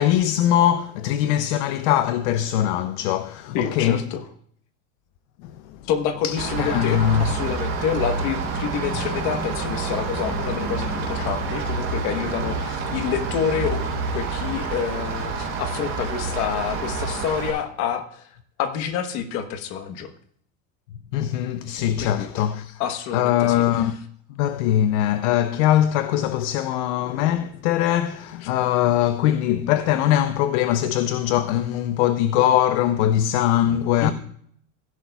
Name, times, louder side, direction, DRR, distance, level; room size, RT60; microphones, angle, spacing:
voice 1, 0.0-4.0 5.4-5.8 6.2-7.3 21.1-22.8 23.1-24.0 24.4-34.1, left 11 dB, 65° left, 0.6 m, -21 dB
voice 2, 3.5-4.2 5.9-18.3 18.6-20.1 22.0-22.3 22.8-23.6 34.0-34.1, left 8 dB, 45° left, 1.2 m, -28 dB
Rain, 6.4-17.5, right 4 dB, 30° right, 3.4 m, -28 dB
16.0 x 11.0 x 2.3 m
cardioid pair, 180°, 38 cm